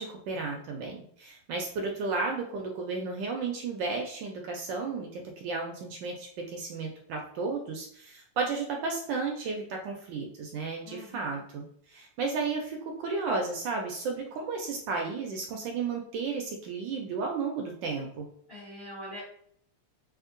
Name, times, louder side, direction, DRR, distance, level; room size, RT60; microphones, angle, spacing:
voice 1, 0.0-18.3, right 4 dB, 75° right, 1 dB, 1.1 m, -33 dB
voice 2, 10.8-11.4 18.5-19.2, left 1 dB, 35° left, -9 dB, 1.1 m, -43 dB
3.5 x 2.9 x 2.5 m, 0.65 s
omnidirectional pair, 2.4 m